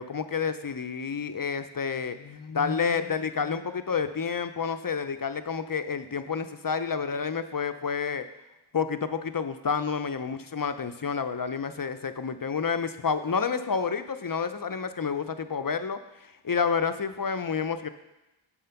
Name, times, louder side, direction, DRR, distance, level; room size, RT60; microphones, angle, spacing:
voice 1, 0.0-8.2 8.7-17.9, left 6 dB, 45° left, 10 dB, 0.6 m, -29 dB
7.5 x 6.3 x 5.8 m, 0.97 s
wide cardioid pair, 45°, 49 cm